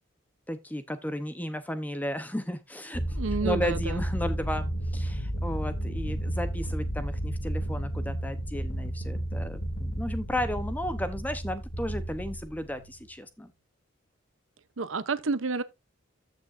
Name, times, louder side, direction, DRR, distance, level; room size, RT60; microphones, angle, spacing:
voice 1, 0.5-13.5, left 1 dB, 10° left, 0.9 m, -34 dB
sound 1, 2.9-13.0, right 1 dB, 85° left, 2.4 m, -32 dB
voice 2, 3.2-4.0 14.8-15.6, right 4 dB, 80° right, 0.8 m, -29 dB
14.0 x 6.3 x 2.6 m
head